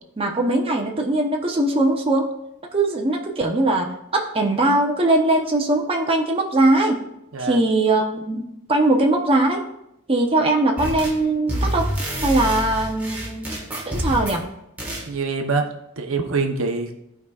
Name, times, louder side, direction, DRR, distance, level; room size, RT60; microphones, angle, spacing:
voice 1, 0.2-2.3 2.7-7.0 7.4-9.6 10.1-11.9 12.2-13.5 13.8-14.5, right 2 dB, 25° right, 0 dB, 0.7 m, -20 dB
sound 1, 10.8-11.2 11.5-14.4 14.8-15.1, equal, 10° right, 1.4 m, -27 dB
voice 2, 15.1-15.7 16.0-17.0, right 4 dB, 65° right, 4 dB, 0.8 m, -25 dB
14.5 x 4.8 x 2.4 m, 0.82 s
head